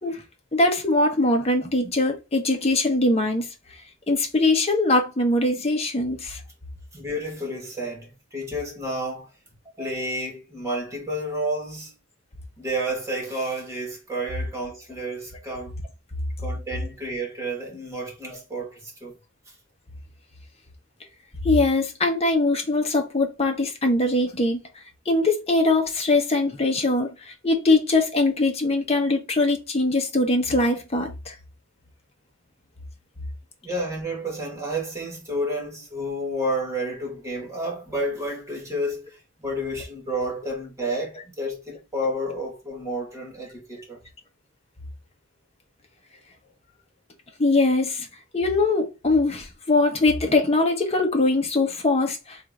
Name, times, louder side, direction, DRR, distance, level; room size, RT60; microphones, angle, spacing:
voice 1, 0.5-3.5 4.1-6.4 21.4-24.6 25.1-31.3 47.4-48.1 48.3-52.5, left 2 dB, 30° left, 1.1 m, -22 dB
voice 2, 6.9-9.3 9.8-11.9 12.6-15.7 16.4-19.1 33.6-44.0, right 1 dB, 15° right, 2.1 m, -30 dB
3.6 x 2.7 x 4.7 m
head